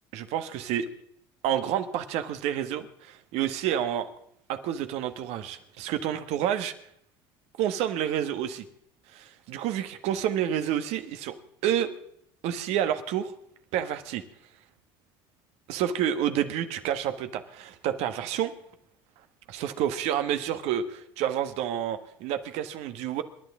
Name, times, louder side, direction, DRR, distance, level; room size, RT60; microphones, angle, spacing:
voice 1, 0.1-0.9 1.4-4.1 4.5-6.7 7.6-8.6 9.1-11.3 11.6-11.9 12.4-13.3 13.7-14.2 15.7-18.5 19.5-23.2, right 10 dB, 65° right, 9 dB, 1.4 m, -29 dB
27.5 x 11.5 x 3.7 m, 0.69 s
hypercardioid pair, 75°, 12 cm